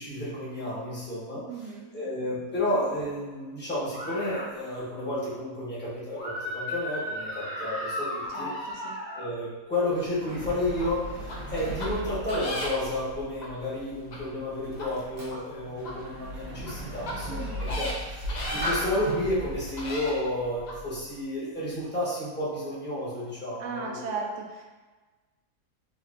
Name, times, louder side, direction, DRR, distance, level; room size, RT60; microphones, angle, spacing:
voice 1, 0.0-1.4 1.9-8.5 9.1-24.0, left 1 dB, 10° left, -9 dB, 0.8 m, -31 dB
voice 2, 1.5-2.1 2.3-2.6 8.3-9.0 17.3-17.8 23.6-24.7, right 4 dB, 70° right, 1 dB, 0.9 m, -38 dB
sound 1, 3.9-4.4 6.2-9.3, left 1 dB, 70° left, 2.1 m, -35 dB
Sliding door, 9.7-21.1, equal, 85° right, 1.4 m, -37 dB
sound 2, 10.8-10.9 11.3-11.4 11.8-11.9 12.3-12.9 13.4-13.5 14.1-14.2 14.7-14.9 15.3-15.4 15.8-15.9 16.6-16.7 17.0-17.1 17.6-17.9 18.3-18.7 19.3-19.4 19.8-20.1 20.7-20.8, left 1 dB, 85° left, 0.4 m, -35 dB
4.3 x 2.7 x 2.4 m, 1.3 s
omnidirectional pair, 1.5 m